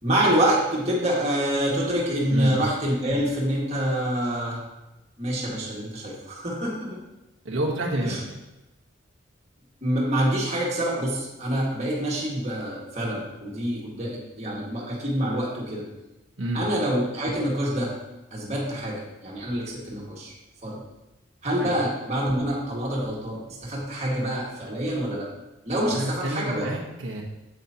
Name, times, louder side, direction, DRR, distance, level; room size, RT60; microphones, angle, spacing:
voice 1, 0.0-4.7 5.2-7.0 8.0-8.2 9.8-15.9 16.5-17.9 18.3-20.3 20.6-20.8 21.4-25.3 25.6-26.7, right 1 dB, 35° right, -4 dB, 1.8 m, -26 dB
voice 2, 7.4-8.4 16.4-16.6 21.6-21.7 25.7-27.2, right 1 dB, 75° right, -3 dB, 1.2 m, -29 dB
8.1 x 8.0 x 2.9 m, 0.99 s
head